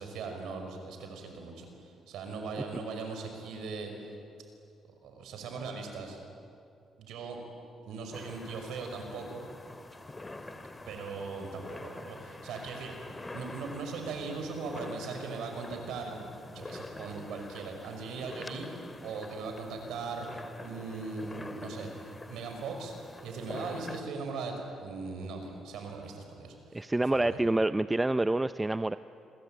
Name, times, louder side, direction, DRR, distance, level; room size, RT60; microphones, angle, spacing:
voice 1, 0.0-3.9 5.0-6.2 7.0-7.4 7.8-9.4 10.9-12.9 13.3-21.9 22.3-22.9 23.2-26.8 27.1-27.4, right 4 dB, 85° right, 4 dB, 5.6 m, -39 dB
sound 1, 8.1-24.0, left 2 dB, 20° left, 2.2 m, -46 dB
voice 2, 26.7-29.0, right 2 dB, 15° right, 13 dB, 0.6 m, -27 dB
28.0 x 22.0 x 9.2 m, 2.5 s
cardioid pair, 90°, 0 cm